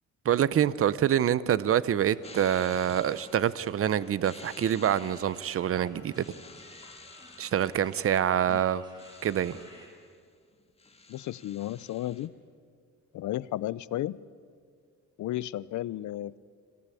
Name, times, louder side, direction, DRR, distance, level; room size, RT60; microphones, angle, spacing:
voice 1, 0.2-6.2 7.4-8.8 9.2-9.6, right 10 dB, 50° right, 18 dB, 0.7 m, -26 dB
sound 1, 2.1-9.9, equal, 15° right, 6.8 m, -56 dB
sound 2, 2.2-10.2 10.5-12.3, left 3 dB, 20° left, 1.8 m, -51 dB
voice 2, 11.1-12.3 13.1-14.2 15.2-16.4, left 14 dB, 70° left, 19 dB, 0.6 m, -33 dB
26.5 x 17.0 x 8.5 m, 2.1 s
cardioid pair, 90°, 30 cm